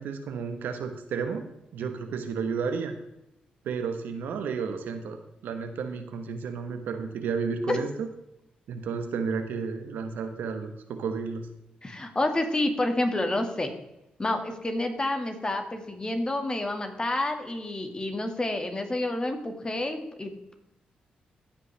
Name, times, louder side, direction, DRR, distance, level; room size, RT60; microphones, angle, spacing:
voice 1, 0.0-1.4 1.7-2.9 3.6-8.1 8.7-11.5, right 5 dB, 80° right, 7 dB, 1.1 m, -32 dB
voice 2, 11.8-13.7 14.2-20.3, left 2 dB, 25° left, 5 dB, 1.9 m, -29 dB
15.5 x 5.4 x 3.3 m, 0.88 s
supercardioid pair, 55°, 3 cm